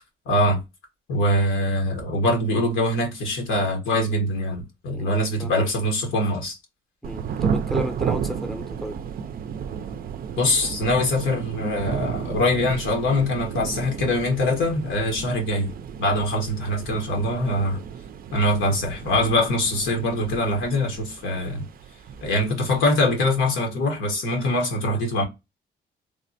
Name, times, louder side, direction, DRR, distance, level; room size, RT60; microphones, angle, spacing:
voice 1, 0.3-0.6 1.1-6.6 10.4-15.7 16.0-17.8 18.3-21.6 22.2-25.2, left 1 dB, 90° left, 1.1 m, -23 dB
voice 2, 4.9-5.5 7.0-9.0, right 1 dB, ahead, 0.6 m, -33 dB
Thunder / Rain, 7.0-23.3, right 7 dB, 50° right, 0.4 m, -33 dB
3.3 x 2.1 x 2.7 m
cardioid pair, 90°, 20 cm